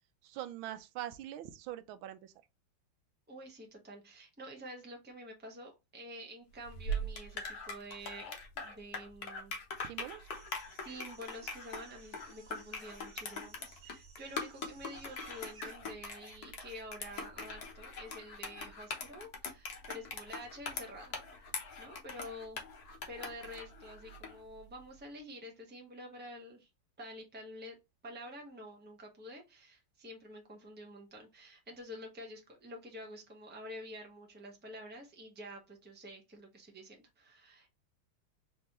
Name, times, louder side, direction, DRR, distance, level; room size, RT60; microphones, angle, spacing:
voice 1, 0.2-2.3 9.8-10.3, right 12 dB, 85° right, 1.4 m, -43 dB
voice 2, 3.3-10.0 10.8-22.6 23.1-26.7 27.0-27.7 28.0-37.7, equal, 10° right, 0.8 m, -49 dB
sound 1, 6.6-24.4, left 2 dB, 55° left, 1.4 m, -42 dB
sound 2, 10.3-15.7, right 4 dB, 60° right, 1.8 m, -57 dB
3.9 x 3.4 x 2.9 m
omnidirectional pair, 2.2 m